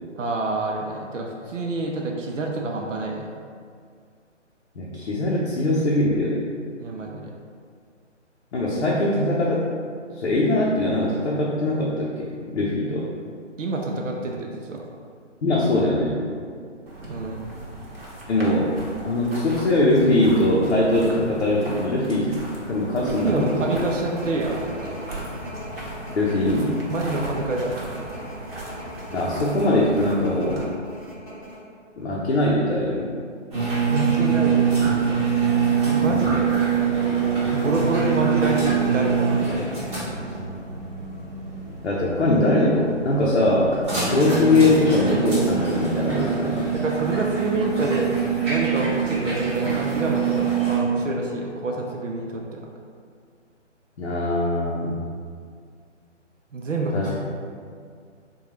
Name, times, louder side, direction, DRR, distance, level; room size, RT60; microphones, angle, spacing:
voice 1, 0.2-3.4 6.8-7.3 13.6-14.8 17.1-17.5 23.0-25.0 26.9-27.8 33.9-35.2 35.8-36.6 37.5-40.0 46.7-52.7 56.5-57.1, right 2 dB, 80° right, 0 dB, 0.6 m, -27 dB
voice 2, 4.8-6.4 8.5-9.7 10.1-13.1 15.4-16.2 18.3-18.7 19.0-22.4 22.7-23.6 26.1-26.7 29.1-30.6 32.0-33.1 36.1-36.4 41.8-46.7 54.0-55.0 56.9-57.1, left 1 dB, 65° left, -5 dB, 0.6 m, -21 dB
sound 1, 16.9-30.7, right 1 dB, 50° right, 0.9 m, -37 dB
sound 2, 23.2-31.6, equal, 5° left, 0.7 m, -40 dB
sound 3, 33.5-50.8, right 6 dB, 20° right, 0.8 m, -24 dB
3.7 x 2.3 x 3.0 m, 2.1 s
figure-of-eight pair, 145°, 37 cm